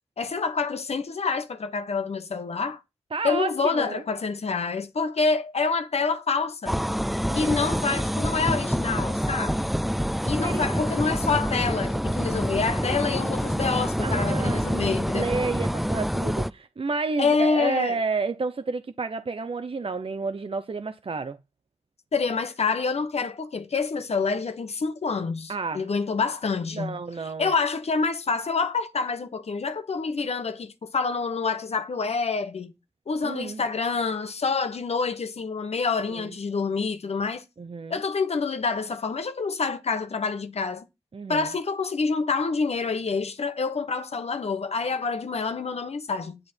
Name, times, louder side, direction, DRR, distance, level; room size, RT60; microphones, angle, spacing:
voice 1, 0.2-2.8 3.2-6.8 7.3-9.7 10.2-15.3 17.2-18.0 22.1-27.0 27.4-32.7 33.1-37.4 37.9-40.9 41.3-46.4, left 4 dB, 85° left, 1.1 m, -27 dB
voice 2, 3.1-4.0 7.3-7.5 10.4-10.7 14.0-21.4 25.5-25.9 26.7-27.5 33.2-33.6 36.1-36.2 37.6-38.0 41.1-41.5, right 4 dB, 60° right, 0.8 m, -30 dB
sound 1, 6.7-16.5, equal, ahead, 0.5 m, -27 dB
10.0 x 7.8 x 4.5 m
cardioid pair, 40°, 11 cm